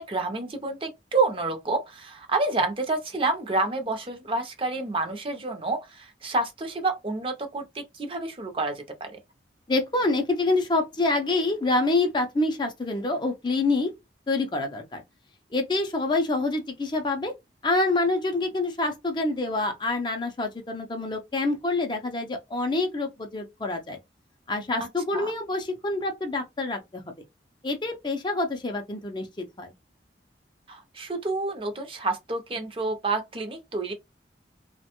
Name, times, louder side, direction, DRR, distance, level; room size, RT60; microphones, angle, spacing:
voice 1, 0.0-9.2 24.8-24.9 25.1-25.3 30.7-33.9, right 3 dB, 30° right, 0.6 m, -29 dB
voice 2, 9.7-13.9 14.3-15.0 15.5-17.3 17.6-24.0 24.5-27.0 27.6-29.7, left 2 dB, 25° left, 0.4 m, -26 dB
3.0 x 2.1 x 2.9 m
head